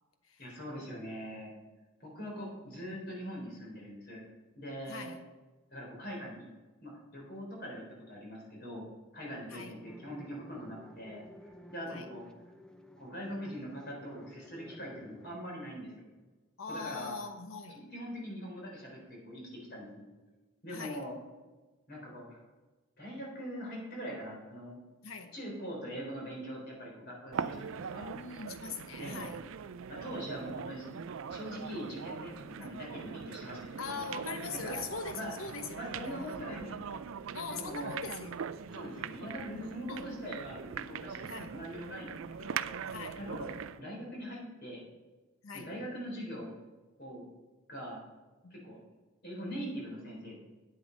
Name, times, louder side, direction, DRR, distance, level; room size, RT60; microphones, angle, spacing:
voice 1, 0.4-1.5 2.0-4.2 4.6-5.1 5.7-6.5 6.8-11.2 11.7-12.2 13.0-16.1 16.7-17.2 17.7-20.1 20.6-21.2 21.9-22.4 23.0-24.8 25.3-28.1 29.0-29.3 29.9-30.8 31.3-34.0 34.5-34.8 35.1-35.3 35.7-37.0 37.5-37.9 38.7-42.1 42.4-42.6 43.2-44.8 45.5-46.5 47.0-47.3 47.7-48.0 48.5-48.8 49.2-50.4, equal, 50° left, -2 dB, 3.9 m, -42 dB
voice 2, 4.9-5.2 9.5-9.7 11.9-12.1 16.6-17.8 20.7-21.0 25.0-25.3 28.0-29.4 32.6-32.7 33.8-36.8 37.3-38.4 39.9-40.1 41.3-41.5 42.9-43.2 45.4-45.7 48.4-48.5, left 4 dB, 70° left, 7 dB, 1.1 m, -42 dB
sound 1, 9.8-15.4, equal, 5° left, 0.5 m, -53 dB
sound 2, 27.3-43.8, right 7 dB, 65° right, 0.4 m, -41 dB
9.7 x 8.4 x 5.2 m, 1.2 s
head